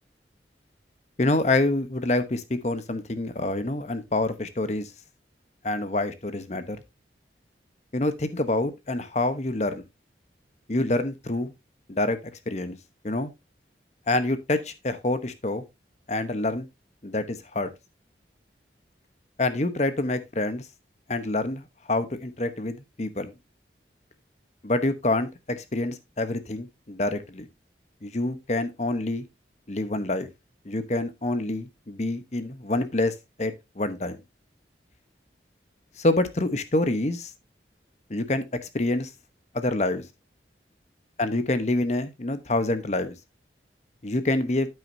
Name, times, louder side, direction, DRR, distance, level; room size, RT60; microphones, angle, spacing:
voice 1, 1.2-4.9 5.6-6.8 7.9-9.8 10.7-11.5 11.9-12.2 12.5-12.8 13.0-13.3 14.1-15.6 16.1-16.7 17.0-17.7 19.4-20.7 21.1-23.3 24.6-27.5 28.0-29.2 29.7-30.3 30.6-34.2 36.0-37.3 38.1-39.1 39.5-40.0 41.2-43.1 44.0-44.7, left 2 dB, 40° left, 1.0 m, -27 dB
9.2 x 8.7 x 2.7 m
head